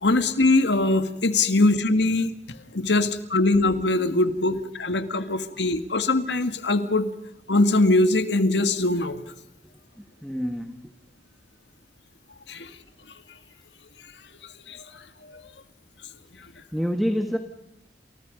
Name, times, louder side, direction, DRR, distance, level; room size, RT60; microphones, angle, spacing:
voice 1, 0.0-2.3 2.7-7.1 7.5-9.2 12.5-12.7 14.7-15.0 15.3-15.4, left 2 dB, 90° left, 1.9 m, -22 dB
voice 2, 10.0-10.9 16.7-17.4, equal, ahead, 1.5 m, -27 dB
29.5 x 29.0 x 5.2 m
head